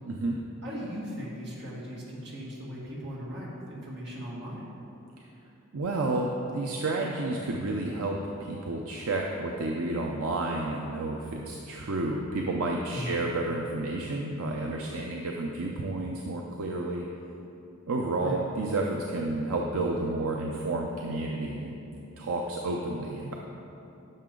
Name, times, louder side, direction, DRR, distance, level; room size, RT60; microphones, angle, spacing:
voice 1, 0.1-0.4 5.7-17.1 17.9-21.8 22.2-23.3, right 2 dB, 75° right, 0 dB, 0.6 m, -31 dB
voice 2, 0.6-4.7 12.9-13.2 18.2-18.5, equal, 50° right, -5 dB, 2.0 m, -38 dB
11.0 x 6.5 x 3.8 m, 2.8 s
head